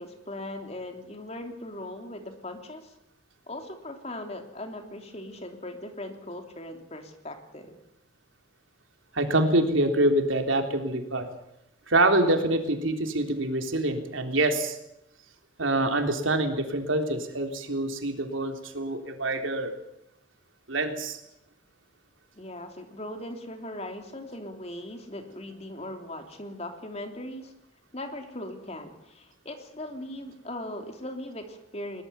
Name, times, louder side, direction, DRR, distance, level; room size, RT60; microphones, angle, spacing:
voice 1, 0.0-2.9 3.5-7.8 22.3-27.5 27.9-32.0, left 1 dB, 35° left, 5 dB, 3.1 m, -39 dB
voice 2, 9.1-11.3 11.9-14.8 15.6-19.7 20.7-21.2, right 1 dB, 85° right, 5 dB, 3.5 m, -25 dB
22.0 x 19.5 x 7.0 m, 0.82 s
head